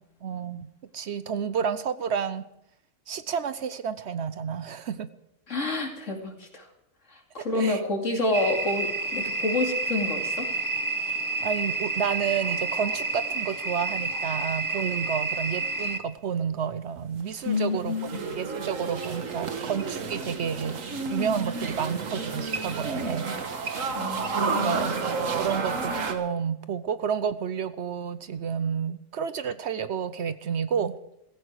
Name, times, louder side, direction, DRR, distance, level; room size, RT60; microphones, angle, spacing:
voice 1, 0.2-0.7 0.9-2.4 3.1-5.1 7.6-7.8 11.4-18.0 18.3-20.8 21.1-23.3 24.4-25.0 25.4-31.0, right 7 dB, 60° right, 13 dB, 0.9 m, -30 dB
voice 2, 5.5-6.7 7.1-10.5 17.4-18.2 23.9-24.9, left 2 dB, 70° left, 2 dB, 3.0 m, -29 dB
sound 1, 8.3-16.0, right 3 dB, 15° right, 0.8 m, -29 dB
sound 2, 17.2-26.1, right 4 dB, 80° right, 1.8 m, -31 dB
16.0 x 15.0 x 4.8 m, 0.82 s
omnidirectional pair, 1.4 m